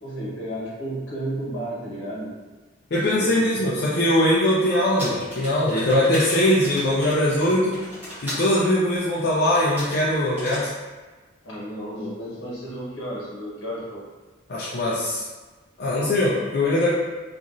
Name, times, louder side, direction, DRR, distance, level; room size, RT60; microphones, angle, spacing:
voice 1, 0.0-2.4 3.0-3.5 11.4-14.0, right 1 dB, 80° left, -6 dB, 1.2 m, -33 dB
voice 2, 2.9-7.8 8.2-10.7 14.5-15.2 15.8-16.9, left 1 dB, 55° left, -8 dB, 0.4 m, -21 dB
sound 1, 5.0-8.5 9.4-10.0 10.4-10.7, left 1 dB, 10° right, 1.0 m, -35 dB
2.9 x 2.5 x 2.5 m, 1.3 s
head